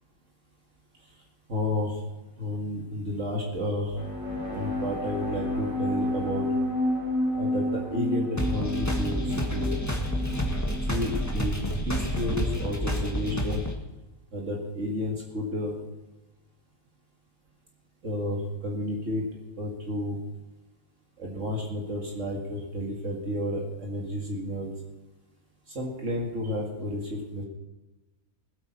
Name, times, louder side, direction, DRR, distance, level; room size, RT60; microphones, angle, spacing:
voice 1, 1.5-2.0 2.4-4.0 4.5-6.5 7.4-9.7 10.9-11.6 11.9-13.6 14.3-15.8 18.0-19.2 19.6-20.2 21.2-24.7 25.7-27.4, left 1 dB, 60° right, -1 dB, 2.4 m, -31 dB
sound 1, 3.9-11.4, left 1 dB, 20° right, 4.3 m, -30 dB
sound 2, 8.4-13.7, equal, 10° left, 1.7 m, -29 dB
20.0 x 8.7 x 4.5 m, 1.1 s
omnidirectional pair, 1.5 m